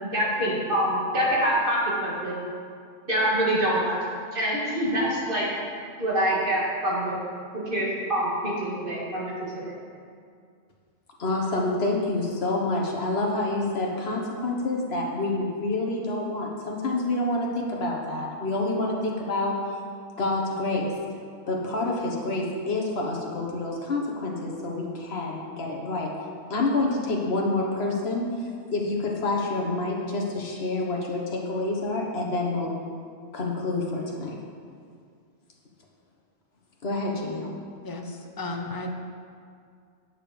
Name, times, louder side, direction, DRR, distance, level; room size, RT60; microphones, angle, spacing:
voice 1, 0.0-2.4 3.1-4.0 4.3-5.4 6.0-7.2 7.5-9.8, equal, 50° right, -5 dB, 2.4 m, -25 dB
voice 2, 11.2-19.5 20.2-20.9 21.5-32.7 33.3-34.4 36.8-37.5, left 2 dB, 60° left, -1 dB, 1.5 m, -28 dB
voice 3, 37.8-38.9, left 2 dB, 20° left, 3 dB, 0.7 m, -34 dB
9.8 x 6.7 x 5.2 m, 2.2 s
omnidirectional pair, 1.2 m